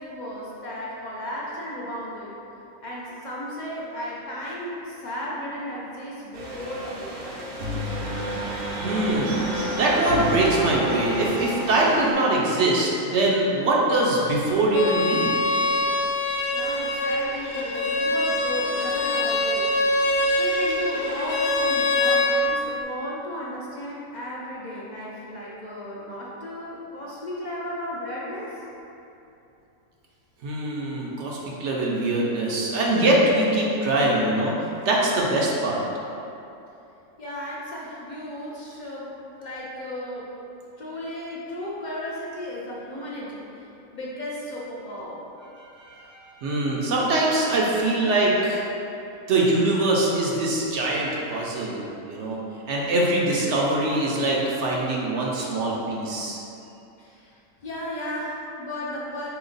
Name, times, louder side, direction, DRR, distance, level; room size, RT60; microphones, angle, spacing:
voice 1, 0.0-2.3 2.8-7.4 16.5-28.6 37.2-40.3 40.8-45.2 57.0-59.3, left 1 dB, 60° left, -6 dB, 0.5 m, -35 dB
sound 1, 6.3-12.1, equal, 85° right, 1.3 m, -30 dB
voice 2, 8.8-9.4 9.8-15.4 30.4-35.8 45.6-48.6 49.3-52.4 52.7-56.4, right 2 dB, 65° right, -3 dB, 0.8 m, -23 dB
Bowed string instrument, 14.7-22.3, left 2 dB, 85° left, 1.0 m, -24 dB
4.2 x 2.9 x 3.9 m, 2.9 s
omnidirectional pair, 1.5 m